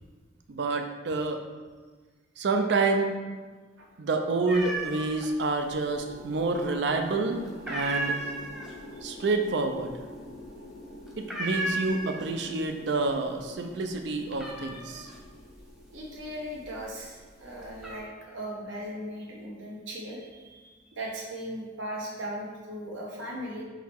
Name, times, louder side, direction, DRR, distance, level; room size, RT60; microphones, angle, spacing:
voice 1, 0.5-1.4 2.4-3.1 4.0-8.2 9.0-10.0 11.2-15.1, right 3 dB, 65° right, 5 dB, 0.5 m, -28 dB
sound 1, 4.5-5.3 5.6-6.4 6.7-7.1 7.4-12.5 12.9-13.4 13.7-16.9 17.4-18.0, right 2 dB, 5° right, 0.6 m, -35 dB
sound 2, 5.6-17.9, left 1 dB, 75° left, 1.4 m, -47 dB
voice 2, 15.9-23.6, equal, 85° right, -3 dB, 1.1 m, -38 dB
3.9 x 3.1 x 4.4 m, 1.4 s
head